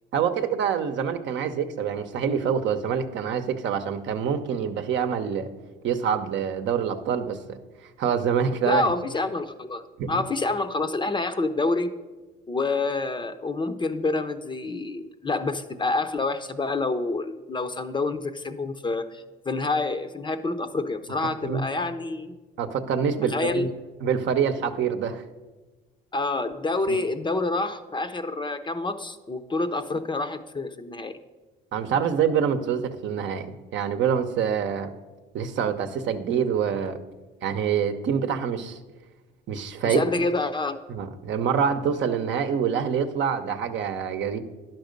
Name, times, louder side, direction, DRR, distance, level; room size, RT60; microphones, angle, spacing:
voice 1, 0.1-5.5 5.8-7.6 8.0-8.9 10.0-10.2 21.4-21.6 22.6-23.7 24.0-25.2 26.9-27.0 31.7-34.9 35.3-37.0 37.4-38.8 39.5-40.0 40.9-44.4, right 7 dB, 60° right, 7 dB, 0.8 m, -26 dB
voice 2, 8.6-11.9 12.5-22.4 23.3-23.7 26.1-31.2 39.8-40.8, left 3 dB, 20° left, 10 dB, 0.6 m, -27 dB
10.5 x 6.0 x 5.2 m, 1.2 s
supercardioid pair, 85°, 21 cm